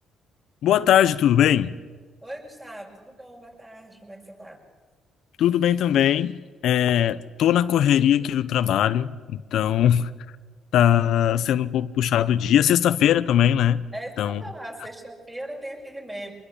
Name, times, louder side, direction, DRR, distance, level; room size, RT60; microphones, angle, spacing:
voice 1, 0.6-1.7 5.4-6.4 6.6-10.1 10.7-13.8 14.2-14.4, left 10 dB, 80° left, 13 dB, 0.7 m, -20 dB
voice 2, 2.2-4.6 13.9-16.3, right 1 dB, 15° right, 1 dB, 6.5 m, -39 dB
25.5 x 21.5 x 8.5 m, 1.5 s
cardioid pair, 90°, 0 cm